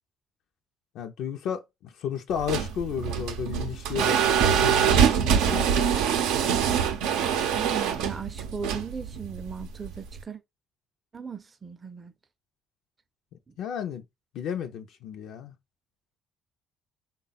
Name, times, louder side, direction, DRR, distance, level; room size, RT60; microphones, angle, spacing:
voice 1, 0.9-6.3 13.6-14.0 14.3-15.5, left 8 dB, 75° left, 0.4 m, -33 dB
sound 1, 2.3-10.2, right 8 dB, 90° right, 0.6 m, -24 dB
voice 2, 7.6-10.4 11.1-12.1 13.5-13.6, right 6 dB, 30° right, 0.5 m, -37 dB
3.4 x 2.2 x 3.9 m
cardioid pair, 85°, 0 cm